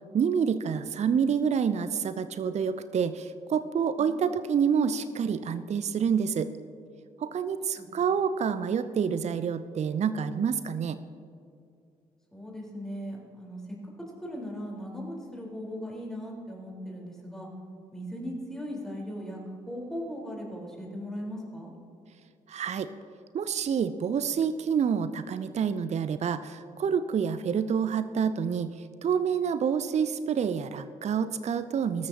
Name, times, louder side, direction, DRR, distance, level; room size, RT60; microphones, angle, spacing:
voice 1, 0.1-6.5 7.2-11.0 22.5-22.9 23.3-28.7 29.0-32.1, right 7 dB, 35° right, 13 dB, 0.6 m, -28 dB
voice 2, 12.3-13.6 14.2-17.5 17.9-19.4 19.7-21.7, equal, ahead, -3 dB, 4.3 m, -38 dB
23.5 x 13.0 x 2.9 m, 2.4 s
figure-of-eight pair, 40°, 19 cm